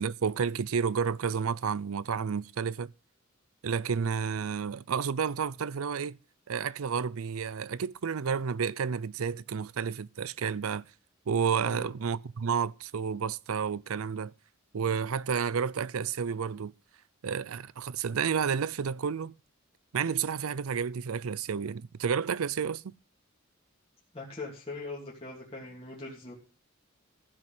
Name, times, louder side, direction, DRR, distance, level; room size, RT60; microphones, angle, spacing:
voice 1, 0.0-2.9 3.6-6.2 6.5-10.9 11.3-14.3 14.7-16.7 17.2-19.3 19.9-22.9, right 6 dB, 85° right, 0.5 m, -31 dB
voice 2, 24.1-26.3, left 3 dB, 30° left, 2.9 m, -41 dB
15.0 x 6.2 x 5.9 m
head